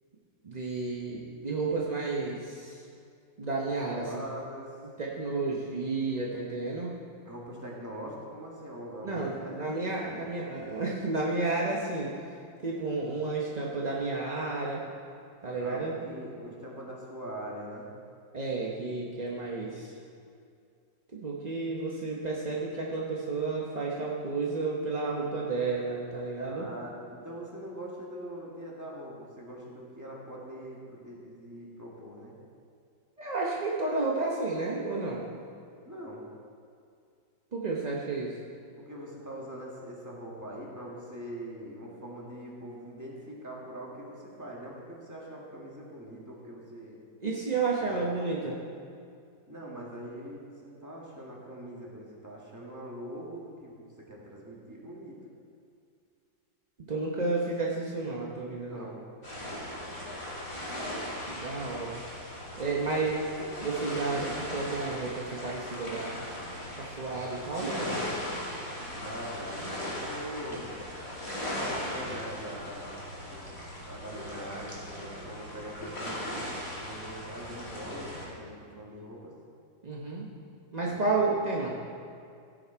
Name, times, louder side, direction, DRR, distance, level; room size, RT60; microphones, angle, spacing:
voice 1, 0.4-2.8 3.4-4.1 5.0-6.9 9.0-12.1 12.6-14.8 15.4-16.0 18.3-19.9 21.1-26.7 33.2-35.2 37.5-38.3 47.2-48.6 56.9-58.9 61.3-62.0 62.6-63.2 63.6-66.3 66.8-68.0 79.8-80.3 80.7-81.7, right 3 dB, 40° right, -3 dB, 0.6 m, -31 dB
voice 2, 3.9-4.7 7.2-9.7 15.6-17.9 26.4-32.3 35.8-36.2 38.8-47.0 47.8-48.3 49.5-55.2 58.5-59.1 68.9-70.7 71.8-79.3 80.8-81.1, right 1 dB, 10° right, -4 dB, 1.6 m, -43 dB
sound 1, 59.2-78.3, left 1 dB, 15° left, 2.1 m, -38 dB
16.0 x 6.4 x 4.5 m, 2.4 s
omnidirectional pair, 2.1 m